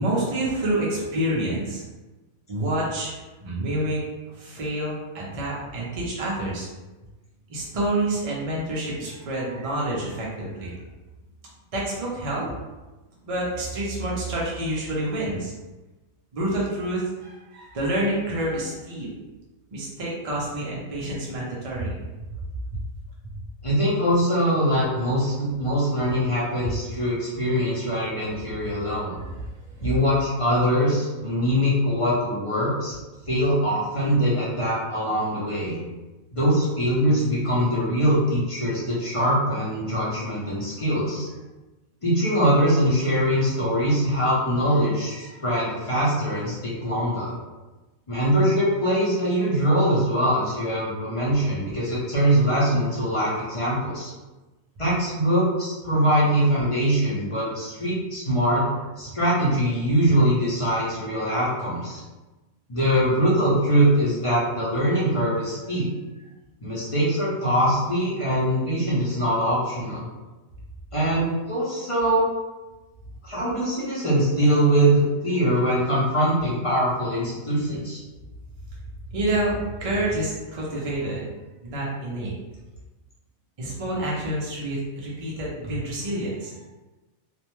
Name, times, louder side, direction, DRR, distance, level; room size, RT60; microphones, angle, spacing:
voice 1, 0.0-1.8 2.5-3.1 3.4-4.0 4.3-6.7 7.5-10.7 11.7-12.5 13.2-15.5 16.3-19.1 19.7-22.0 26.6-26.7 29.1-29.2 29.7-29.9 45.2-45.4 79.1-81.2 81.6-82.3 83.6-86.5, right 1 dB, 60° right, -5 dB, 0.3 m, -28 dB
voice 2, 23.6-29.2 29.8-32.9 33.3-35.8 36.3-41.3 42.0-47.3 48.1-54.1 54.8-58.7 59.0-62.0 62.7-65.9 66.6-70.0 70.9-72.3 73.2-78.0, equal, 35° left, -8 dB, 0.5 m, -22 dB
2.5 x 2.1 x 2.9 m, 1.1 s
omnidirectional pair, 1.4 m